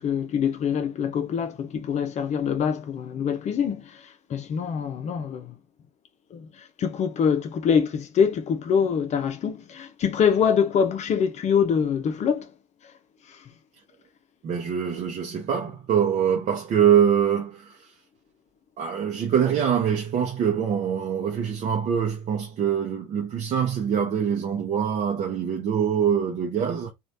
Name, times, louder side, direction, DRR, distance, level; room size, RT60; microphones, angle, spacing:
voice 1, 0.0-5.5 6.3-12.5 13.3-13.5, left 7 dB, 35° left, 0.6 m, -25 dB
voice 2, 14.4-17.8 18.8-26.9, right 8 dB, 40° right, 0.8 m, -24 dB
3.1 x 2.4 x 2.7 m
hypercardioid pair, 80°, 19 cm